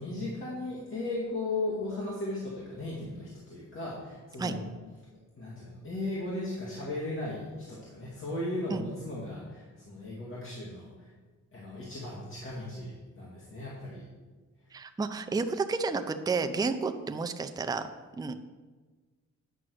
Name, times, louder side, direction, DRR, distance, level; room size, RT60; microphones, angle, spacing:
voice 1, 0.0-4.7 5.4-11.1 11.5-14.0, left 2 dB, 45° left, -5 dB, 2.1 m, -36 dB
voice 2, 14.7-17.9 18.2-18.3, right 4 dB, 15° right, 8 dB, 0.5 m, -31 dB
9.2 x 6.1 x 6.3 m, 1.4 s
wide cardioid pair, 125°, 30 cm